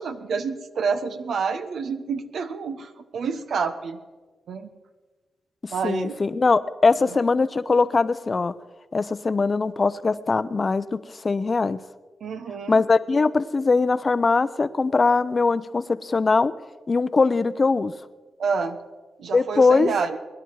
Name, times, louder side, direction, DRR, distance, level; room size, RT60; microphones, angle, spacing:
voice 1, 0.0-4.0 4.5-4.7 5.7-6.2 12.2-12.8 18.4-18.8 19.2-20.2, right 5 dB, 80° right, 8 dB, 1.1 m, -28 dB
voice 2, 5.8-8.5 8.9-11.8 12.7-16.5 16.9-17.9 19.3-19.9, left 4 dB, 40° left, 15 dB, 0.7 m, -21 dB
23.0 x 10.5 x 4.7 m, 1.3 s
cardioid pair, 75°, 0 cm